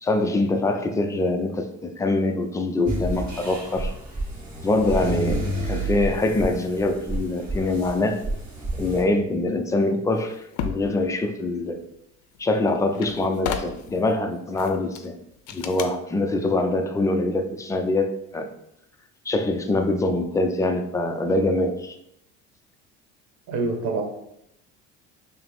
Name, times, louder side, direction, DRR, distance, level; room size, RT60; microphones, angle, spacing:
voice 1, 0.0-3.9 4.6-8.2 8.8-11.8 12.4-15.1 15.5-18.5 19.3-22.0, left 2 dB, 10° left, 5 dB, 0.3 m, -24 dB
sound 1, 2.9-9.0, right 1 dB, 25° right, 1.6 m, -30 dB
sound 2, 10.2-10.9 12.3-12.4 12.7-14.0 14.6-15.1 15.5-15.9, left 7 dB, 70° left, 0.5 m, -32 dB
voice 2, 23.5-24.0, right 3 dB, 60° right, 3 dB, 1.1 m, -25 dB
5.7 x 2.0 x 3.4 m, 0.77 s
cardioid pair, 120°, 30 cm